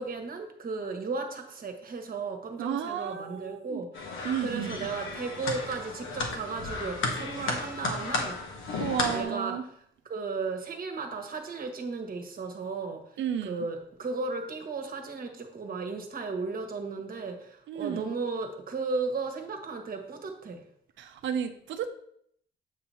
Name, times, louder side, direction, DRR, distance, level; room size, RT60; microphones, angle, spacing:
voice 1, 0.0-3.9 4.4-8.4 9.1-9.6 10.0-13.0 13.4-20.6, right 4 dB, 45° right, 4 dB, 1.3 m, -35 dB
voice 2, 2.6-3.8 4.2-4.9 8.7-9.6 13.2-13.7 17.7-18.2 21.0-21.9, right 8 dB, 70° right, 6 dB, 0.7 m, -32 dB
sound 1, 3.9-9.2, left 3 dB, 80° left, 1.4 m, -33 dB
8.1 x 2.9 x 5.5 m, 0.68 s
cardioid pair, 90°, 20 cm